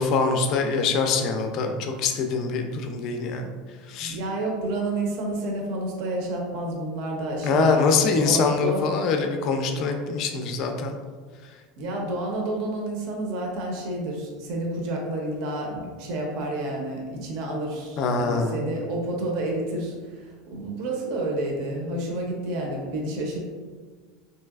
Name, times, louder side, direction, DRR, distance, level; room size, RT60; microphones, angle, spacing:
voice 1, 0.0-3.5 3.9-4.2 7.4-11.0 18.0-18.6, left 4 dB, 45° left, 5 dB, 0.3 m, -24 dB
voice 2, 4.0-8.9 11.8-23.4, right 1 dB, 55° right, 0 dB, 0.6 m, -30 dB
3.2 x 2.7 x 2.3 m, 1.5 s
supercardioid pair, 150°, 0 cm